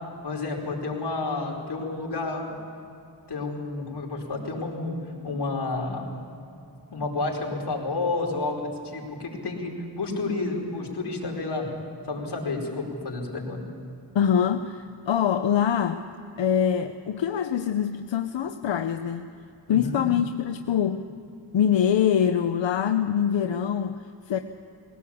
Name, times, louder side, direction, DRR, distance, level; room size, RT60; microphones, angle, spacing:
voice 1, 0.2-2.6 3.3-5.0 5.2-6.0 6.9-11.7 12.0-13.6 19.7-20.0, left 3 dB, 65° left, -1 dB, 4.8 m, -30 dB
voice 2, 14.1-16.0 16.4-19.3 19.7-21.1 21.5-24.4, left 8 dB, 90° left, 7 dB, 0.8 m, -24 dB
21.5 x 17.5 x 8.6 m, 2.7 s
wide cardioid pair, 80°, 44 cm